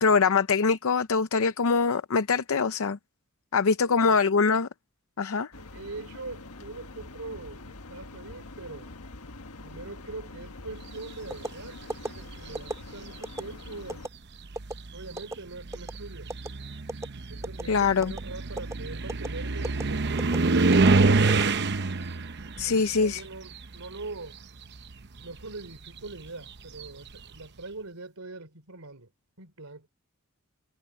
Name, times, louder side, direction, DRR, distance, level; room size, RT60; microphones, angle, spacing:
voice 1, 0.0-3.0 3.5-4.7 5.2-5.5 17.7-18.1 22.6-23.2, left 5 dB, 70° left, 0.6 m, -23 dB
voice 2, 3.9-4.2 5.5-9.0 9.6-11.8 12.1-14.1 14.9-16.3 17.3-20.9 22.4-24.4 25.2-29.1 29.4-29.9, right 3 dB, 80° right, 3.1 m, -42 dB
sound 1, 5.5-14.1, left 2 dB, 90° left, 1.5 m, -45 dB
sound 2, 11.3-11.5 11.9-12.1 12.6-12.8 13.2-13.4 13.9-14.1 14.6-14.7 15.2-15.4 15.7-16.0 16.3-16.5 16.9-17.1 17.4-17.7 18.0-18.2 18.6-18.7 19.1-19.3 19.6-19.8 20.2-20.4 20.7-20.9 21.3-21.9 22.4-22.7, right 1 dB, 15° right, 3.2 m, -34 dB
sound 3, 12.2-12.7 13.7-13.8 14.4-24.3 24.6-27.2, right 3 dB, 50° right, 0.8 m, -27 dB
head